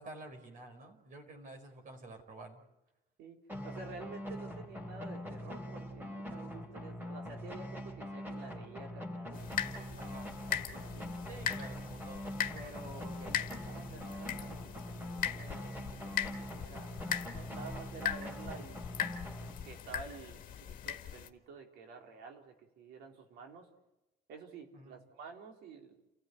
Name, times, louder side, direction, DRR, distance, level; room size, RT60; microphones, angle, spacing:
voice 1, 0.0-2.6 4.6-4.9 10.0-10.3 11.3-12.7 17.5-17.8 20.5-20.8 24.7-25.0, right 2 dB, 50° right, 4 dB, 5.1 m, -51 dB
sound 1, 3.5-20.0, equal, 10° right, 3.8 m, -43 dB
voice 2, 3.6-10.1 10.7-11.2 12.5-14.6 15.0-18.8 19.6-23.7 24.3-26.0, right 4 dB, 80° right, 2 dB, 4.3 m, -50 dB
sound 2, 9.3-21.3, left 8 dB, 55° left, 1.9 m, -40 dB
29.5 x 15.0 x 9.6 m, 0.99 s
cardioid pair, 110°, 17 cm